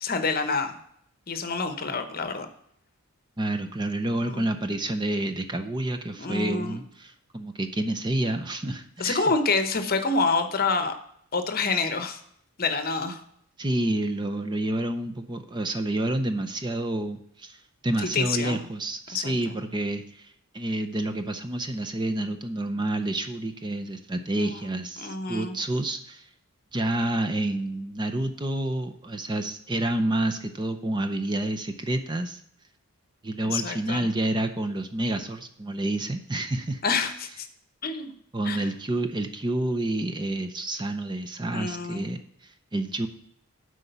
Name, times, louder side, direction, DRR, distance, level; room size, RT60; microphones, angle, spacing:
voice 1, 0.0-0.8 1.3-2.5 4.2-4.5 6.2-6.8 9.0-10.9 11.3-12.2 12.6-13.2 18.0-18.6 19.1-19.6 24.4-24.5 25.0-25.6 33.4-34.1 36.8-37.5 37.8-38.1 38.4-38.7 41.5-42.1, left 4 dB, 40° left, 8 dB, 0.9 m, -27 dB
voice 2, 3.4-9.2 13.6-26.3 26.7-32.4 33.2-36.8 38.3-43.1, right 1 dB, 20° right, 8 dB, 0.5 m, -29 dB
8.2 x 4.9 x 6.7 m, 0.69 s
head